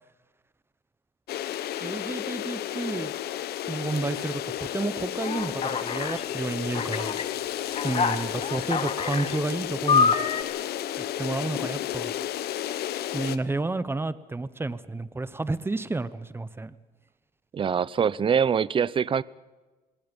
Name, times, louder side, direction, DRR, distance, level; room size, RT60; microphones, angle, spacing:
sound 1, 1.3-13.4, left 12 dB, 70° left, 1.1 m, -32 dB
voice 1, 1.8-3.1 3.7-7.2 7.8-10.1 11.2-12.1 13.1-16.7, right 2 dB, 15° right, 16 dB, 1.0 m, -31 dB
Alarm, 5.2-6.2 6.7-7.2 7.7-9.4 9.9-10.4, left 5 dB, 35° left, 1.6 m, -26 dB
voice 2, 17.5-19.2, right 7 dB, 30° right, 21 dB, 0.6 m, -24 dB
26.5 x 20.5 x 5.3 m, 1.2 s
cardioid pair, 110°, 17 cm